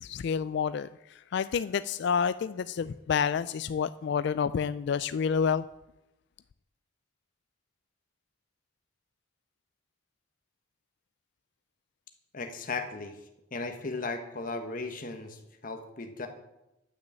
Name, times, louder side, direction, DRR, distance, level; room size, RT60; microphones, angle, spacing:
voice 1, 0.0-5.7, left 6 dB, 60° left, 14 dB, 0.3 m, -29 dB
voice 2, 12.3-13.2 13.5-16.3, left 3 dB, 45° left, 5 dB, 1.2 m, -36 dB
11.5 x 6.4 x 8.7 m, 0.91 s
head